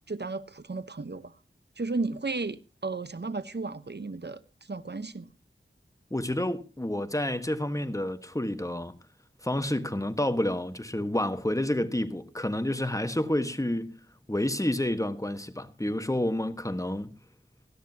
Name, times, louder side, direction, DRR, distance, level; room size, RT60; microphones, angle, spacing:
voice 1, 0.0-1.3 1.8-4.4 4.7-5.2, right 3 dB, 55° right, 1.0 m, -34 dB
voice 2, 6.1-8.9 9.4-13.9 14.3-17.1, left 1 dB, 15° left, 1.5 m, -29 dB
18.5 x 13.0 x 2.9 m
wide cardioid pair, 45°, 21 cm